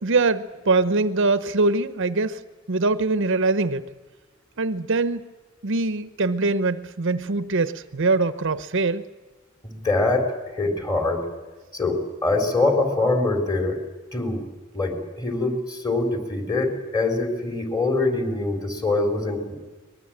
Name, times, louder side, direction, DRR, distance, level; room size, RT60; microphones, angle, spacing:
voice 1, 0.0-2.4 2.7-3.8 4.6-5.3 5.6-9.0, right 3 dB, 65° right, 0.9 m, -23 dB
voice 2, 9.6-11.2 11.7-13.8 14.1-14.4 14.7-19.6, left 2 dB, 20° left, 4.0 m, -24 dB
23.5 x 21.0 x 8.9 m
head